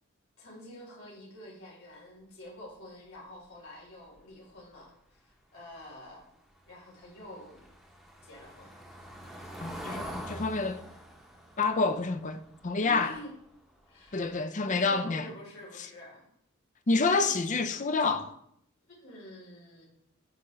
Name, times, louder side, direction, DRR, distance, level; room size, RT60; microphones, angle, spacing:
voice 1, 0.4-6.2 6.7-7.6 8.2-8.7 12.8-13.3 13.9-16.3 18.9-19.9, equal, 75° left, 3.4 m, -48 dB
Car passing by / Engine, 6.5-13.5 13.8-14.1 14.4-14.5, equal, ahead, 0.9 m, -45 dB
voice 2, 9.6-10.8 11.6-13.1 14.1-15.3 16.9-18.3, left 3 dB, 35° left, 0.5 m, -28 dB
13.5 x 4.9 x 3.1 m
head